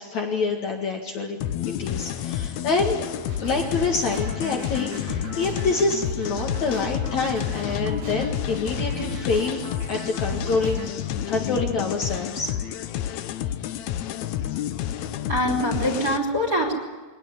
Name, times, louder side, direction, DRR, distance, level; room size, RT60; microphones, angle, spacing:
voice 1, 0.0-1.4 1.8-3.0 3.4-9.6 9.9-10.8 11.3-12.5, left 4 dB, 50° left, 1 dB, 3.0 m, -26 dB
sound 1, 1.4-16.2, left 11 dB, 85° left, 1.6 m, -30 dB
sound 2, 3.0-10.9, equal, 65° right, 8.6 m, -36 dB
voice 2, 15.1-16.7, equal, 25° right, 4 dB, 4.7 m, -24 dB
23.5 x 19.0 x 9.8 m, 1.3 s
omnidirectional pair, 4.5 m